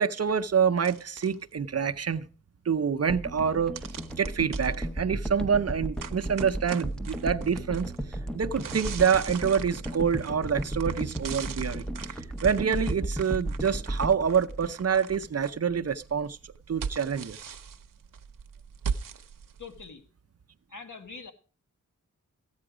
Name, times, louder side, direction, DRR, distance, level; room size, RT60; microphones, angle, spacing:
voice 1, 0.0-2.3 2.7-3.8 4.2-7.9 8.3-11.9 12.4-16.4 16.7-17.5, right 7 dB, 50° right, 0.6 m, -26 dB
sound 1, 0.8-1.4 3.8-4.8 6.0-8.0 8.5-15.5 15.9-19.9, right 6 dB, 90° right, 0.7 m, -40 dB
sound 2, 3.1-15.4 15.7-15.9, right 1 dB, ahead, 0.8 m, -34 dB
voice 2, 19.6-20.0 20.7-21.3, left 4 dB, 70° left, 1.5 m, -43 dB
14.0 x 8.9 x 4.9 m
wide cardioid pair, 125°, 32 cm